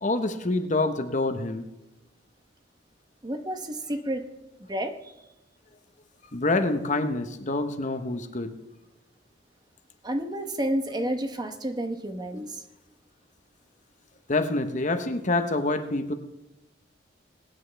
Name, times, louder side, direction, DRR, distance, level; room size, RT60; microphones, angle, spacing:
voice 1, 0.0-1.7 6.3-8.5 14.3-16.1, left 2 dB, 40° left, 8 dB, 1.0 m, -26 dB
voice 2, 3.2-4.2 4.7-5.1 10.0-12.6, right 1 dB, 20° right, 6 dB, 0.9 m, -30 dB
20.5 x 9.5 x 3.4 m, 0.95 s
head